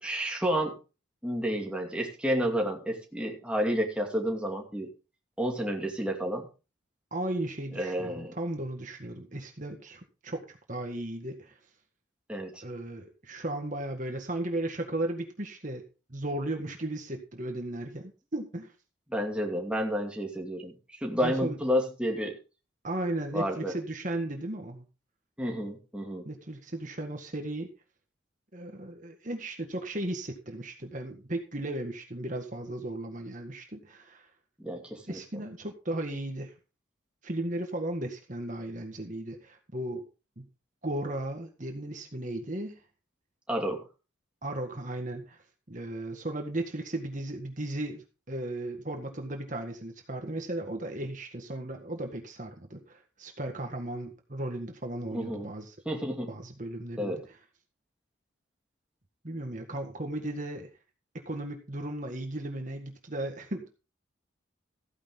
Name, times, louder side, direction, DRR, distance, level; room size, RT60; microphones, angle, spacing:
voice 1, 0.0-0.8 1.2-4.9 5.4-6.5 7.7-8.4 12.3-12.6 19.1-20.7 21.0-22.4 23.3-23.7 25.4-26.3 34.6-35.2 43.5-43.8 55.1-55.5 55.9-56.3 57.0-57.2, equal, 5° right, 0 dB, 2.4 m, -30 dB
voice 2, 7.1-11.6 12.6-15.8 16.1-18.7 21.2-21.6 22.8-24.9 26.3-27.7 28.5-34.3 35.1-36.5 37.2-40.1 40.4-40.5 40.8-42.8 44.4-45.4 45.7-55.8 56.3-57.2 59.2-60.7 61.3-63.7, right 1 dB, 40° right, 4 dB, 1.7 m, -35 dB
15.0 x 9.9 x 3.7 m, 0.32 s
head